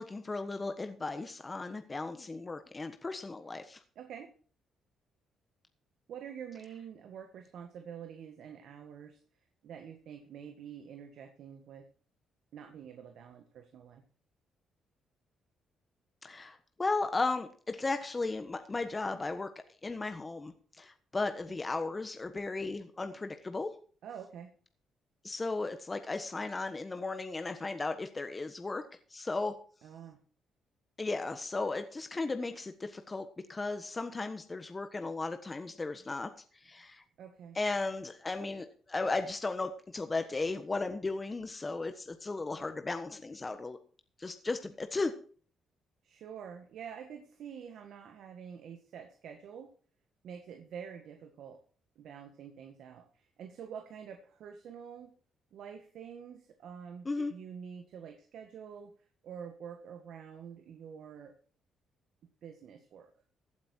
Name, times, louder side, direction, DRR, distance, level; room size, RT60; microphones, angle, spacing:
voice 1, 0.0-3.8 16.2-19.5 19.8-23.7 25.2-28.8 29.1-29.5 31.0-36.3 36.6-37.0 37.5-43.8 44.2-45.1 57.0-57.3, left 3 dB, 25° left, 8 dB, 1.3 m, -35 dB
voice 2, 4.0-4.3 6.1-9.2 9.6-11.9 12.5-14.0 24.0-24.5 29.8-30.2 37.2-37.6 46.0-49.7 50.2-51.6 52.0-55.1 55.5-58.9 59.2-61.3 62.2-63.1, right 7 dB, 70° right, 5 dB, 1.7 m, -47 dB
15.5 x 8.6 x 4.5 m, 0.42 s
cardioid pair, 90°, 0 cm